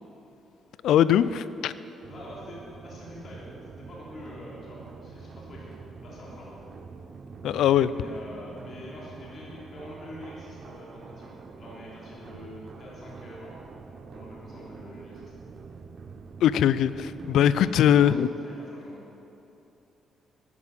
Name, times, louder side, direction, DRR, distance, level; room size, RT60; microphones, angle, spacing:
voice 1, 0.8-1.7 7.4-7.9 16.4-18.3, left 10 dB, 80° left, 16 dB, 0.4 m, -21 dB
sound 1, 2.0-18.2, right 5 dB, 55° right, 0.8 m, -45 dB
voice 2, 2.1-3.4 3.7-5.7 6.0-6.6 7.9-13.5 14.1-15.3 17.6-18.1 18.4-19.0, left 1 dB, 50° left, -6 dB, 3.3 m, -45 dB
11.0 x 9.6 x 7.4 m, 3.0 s
cardioid pair, 90°, 0 cm